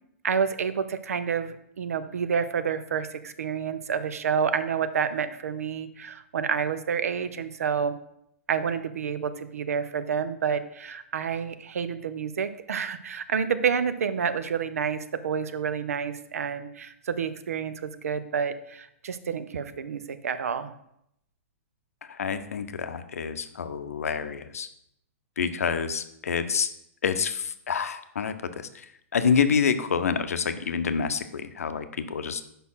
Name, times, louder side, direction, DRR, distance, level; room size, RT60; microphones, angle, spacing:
voice 1, 0.2-7.9 8.5-20.7, right 7 dB, 85° right, 12 dB, 0.6 m, -29 dB
voice 2, 22.1-24.7 25.4-26.7 27.0-28.9 29.1-32.4, left 6 dB, 85° left, 10 dB, 0.6 m, -27 dB
5.5 x 4.3 x 5.6 m, 0.76 s
hypercardioid pair, 135°, 8 cm